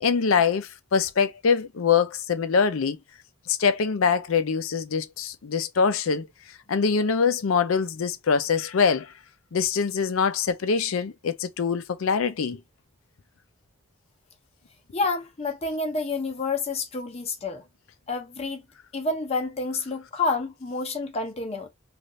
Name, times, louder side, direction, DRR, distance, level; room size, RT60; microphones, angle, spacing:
voice 1, 0.0-3.0 3.5-6.3 6.7-9.1 9.5-12.6, left 6 dB, 80° left, 0.5 m, -24 dB
voice 2, 14.9-17.6 18.1-18.6 18.9-21.7, left 3 dB, 30° left, 0.7 m, -29 dB
3.2 x 2.5 x 2.6 m
head